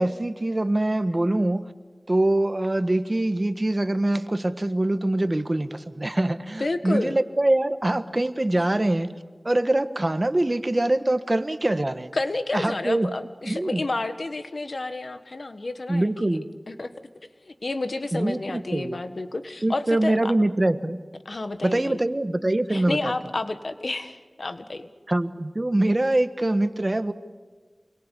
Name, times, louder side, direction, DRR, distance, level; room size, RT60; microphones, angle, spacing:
voice 1, 0.0-1.6 2.1-9.1 9.4-12.1 12.5-13.1 13.4-13.8 15.9-16.5 18.1-19.0 19.6-21.0 21.6-23.1 25.1-27.1, right 1 dB, 40° right, 11 dB, 1.4 m, -24 dB
voice 2, 6.6-7.2 12.1-16.4 16.7-16.9 17.4-20.3 21.2-22.0 22.7-24.9, left 2 dB, 80° left, 10 dB, 1.5 m, -30 dB
28.0 x 22.5 x 8.4 m, 1.4 s
wide cardioid pair, 45°, 0 cm